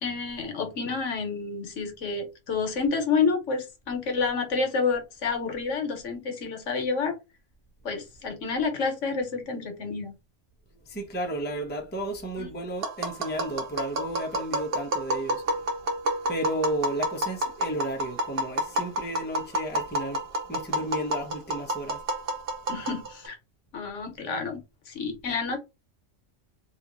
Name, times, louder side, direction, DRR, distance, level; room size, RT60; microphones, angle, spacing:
voice 1, 0.0-7.1 7.8-10.1 12.4-12.5 22.7-23.4 23.7-25.6, left 4 dB, 70° left, 1.3 m, -29 dB
voice 2, 10.7-15.7 16.3-22.0, right 1 dB, 10° left, 0.7 m, -33 dB
Tap, 12.8-23.3, right 1 dB, 55° right, 0.9 m, -30 dB
2.9 x 2.5 x 3.8 m
omnidirectional pair, 1.3 m